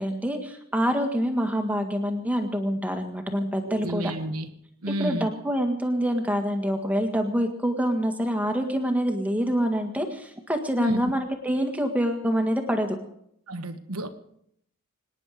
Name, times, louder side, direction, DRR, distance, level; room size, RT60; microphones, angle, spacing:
voice 1, 0.0-4.1 5.0-13.0, equal, 5° right, 5 dB, 1.8 m, -26 dB
voice 2, 3.7-4.5 4.8-5.3 10.8-11.1 13.5-14.1, right 1 dB, 85° right, 8 dB, 1.3 m, -31 dB
25.0 x 10.0 x 5.0 m, 0.73 s
head